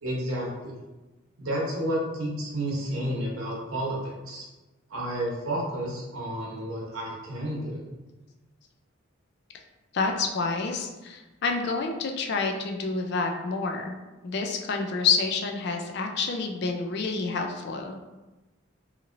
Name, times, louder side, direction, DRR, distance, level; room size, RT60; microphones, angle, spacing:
voice 1, 0.0-0.7 1.4-4.5 4.9-7.8, right 1 dB, 85° right, -3 dB, 0.9 m, -31 dB
voice 2, 9.9-13.9 14.2-18.0, left 4 dB, 50° left, 3 dB, 0.3 m, -28 dB
2.9 x 2.7 x 2.5 m, 1.1 s
head